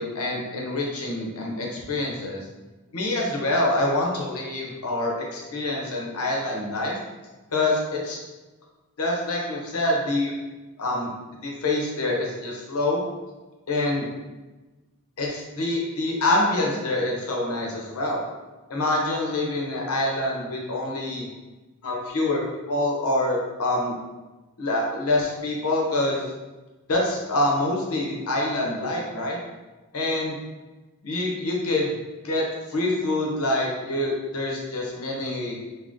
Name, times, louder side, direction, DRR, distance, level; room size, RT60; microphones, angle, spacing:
voice 1, 0.0-2.4 2.9-7.0 7.5-8.2 9.0-10.3 10.8-11.1 11.4-13.0 13.7-14.1 15.2-18.2 18.7-21.3 21.8-22.4 22.7-23.9 24.6-26.3 26.9-29.4 29.9-30.4 31.0-32.0 32.2-35.6, left 2 dB, 80° left, -2 dB, 0.7 m, -26 dB
3.5 x 2.1 x 2.5 m, 1.2 s
head